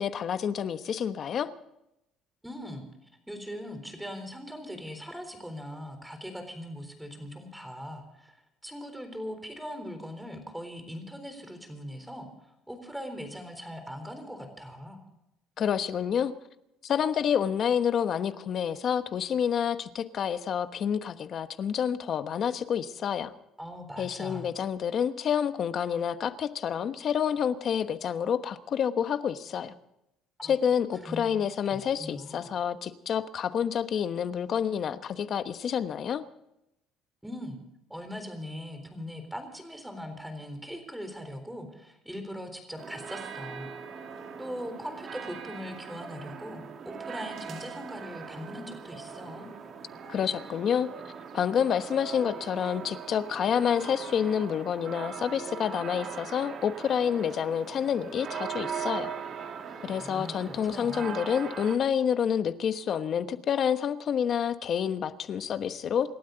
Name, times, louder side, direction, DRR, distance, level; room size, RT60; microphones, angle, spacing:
voice 1, 0.0-1.5 15.6-16.3 16.8-23.3 24.0-29.7 30.4-36.2 50.1-50.9 51.3-59.1 59.8-66.1, left 8 dB, 45° left, 10 dB, 1.1 m, -28 dB
voice 2, 2.4-2.8 3.3-8.4 8.6-12.3 12.7-15.0 23.6-24.5 30.4-30.5 31.0-31.3 31.7-32.5 37.2-37.6 37.9-44.0 44.4-49.5 59.9-61.2, equal, 5° right, 7 dB, 3.8 m, -40 dB
sound 1, 42.8-61.8, right 6 dB, 45° right, 2.4 m, -40 dB
28.0 x 12.5 x 4.0 m, 0.86 s
cardioid pair, 135°, 0 cm